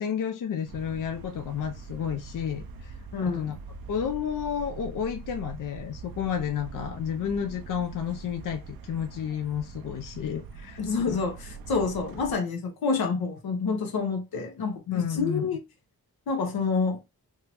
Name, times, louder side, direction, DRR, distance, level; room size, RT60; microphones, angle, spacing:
voice 1, 0.0-3.6 3.9-10.8 11.1-11.2 14.9-15.5, left 8 dB, 60° left, 0.5 m, -31 dB
sound 1, 0.7-12.4, right 5 dB, 75° right, 0.5 m, -43 dB
voice 2, 3.1-3.6 10.8-15.6 16.3-17.0, left 4 dB, 85° left, 0.8 m, -28 dB
3.5 x 2.0 x 2.9 m
cardioid pair, 50°, 36 cm